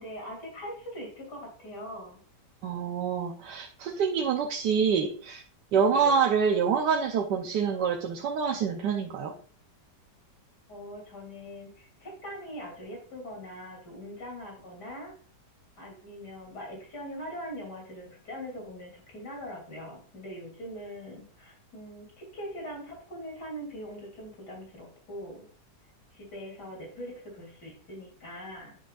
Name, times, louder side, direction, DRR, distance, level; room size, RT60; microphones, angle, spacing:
voice 1, 0.0-2.2 5.9-6.2 10.7-15.1 15.8-25.5 26.1-28.8, equal, 75° left, 0 dB, 3.8 m, -42 dB
voice 2, 2.6-5.4 5.7-9.3, right 6 dB, 85° right, 1 dB, 1.5 m, -26 dB
9.9 x 6.2 x 2.5 m, 0.43 s
omnidirectional pair, 1.8 m